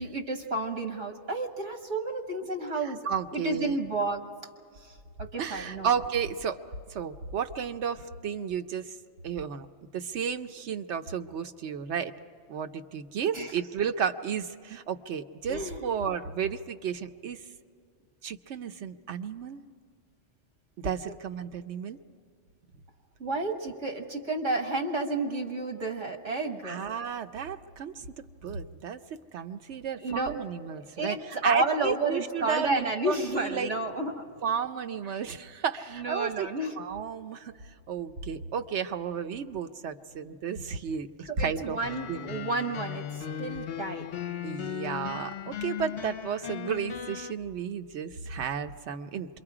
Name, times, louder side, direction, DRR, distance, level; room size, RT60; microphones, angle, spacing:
voice 1, 0.0-3.0 3.3-4.2 5.2-5.9 13.3-13.5 15.5-15.8 23.2-26.8 30.0-30.4 31.0-34.3 36.0-36.7 41.4-43.1 43.4-44.1, right 2 dB, 90° right, 4 dB, 1.9 m, -31 dB
voice 2, 2.8-3.8 5.4-6.6 6.9-9.0 9.2-12.1 12.5-17.5 18.2-19.6 20.8-22.0 26.6-29.0 29.3-33.7 34.4-36.5 36.8-41.8 42.1-42.3 44.4-49.4, right 7 dB, 70° right, 8 dB, 1.0 m, -33 dB
sound 1, 41.8-47.3, left 10 dB, 60° left, 0.8 m, -37 dB
27.0 x 23.0 x 4.9 m, 2.3 s
omnidirectional pair, 1.2 m